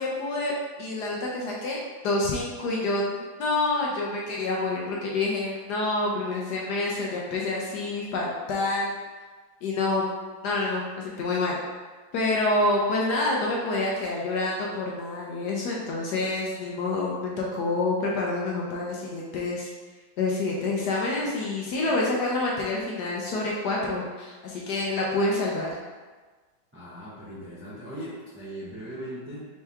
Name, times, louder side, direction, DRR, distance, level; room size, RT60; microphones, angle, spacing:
voice 1, 0.0-1.8 2.0-8.9 9.6-10.1 10.4-11.6 12.1-19.7 20.2-25.8, left 2 dB, 70° left, -3 dB, 1.1 m, -27 dB
voice 2, 26.7-29.4, equal, 20° right, -9 dB, 0.3 m, -39 dB
4.5 x 2.9 x 3.4 m, 1.4 s
omnidirectional pair, 2.1 m